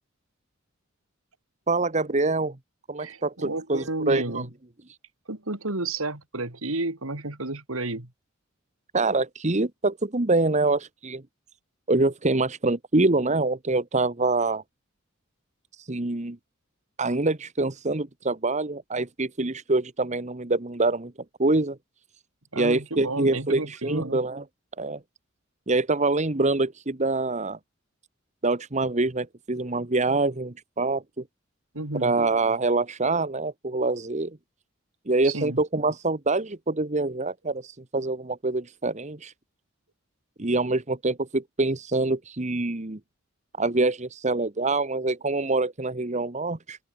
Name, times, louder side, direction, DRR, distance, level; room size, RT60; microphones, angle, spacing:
voice 1, 1.7-2.6 2.9-4.4 8.9-11.2 11.9-14.6 15.9-16.4 17.0-21.1 21.4-21.8 22.5-24.4 24.8-25.0 25.7-27.6 28.4-31.2 32.0-34.4 35.1-39.3 40.4-43.0 43.6-46.8, right 2 dB, 35° right, 1.3 m, -25 dB
voice 2, 3.0-4.5 5.3-8.1 22.5-24.2 31.7-32.2 35.2-35.6, right 2 dB, 85° right, 3.3 m, -31 dB
open air
head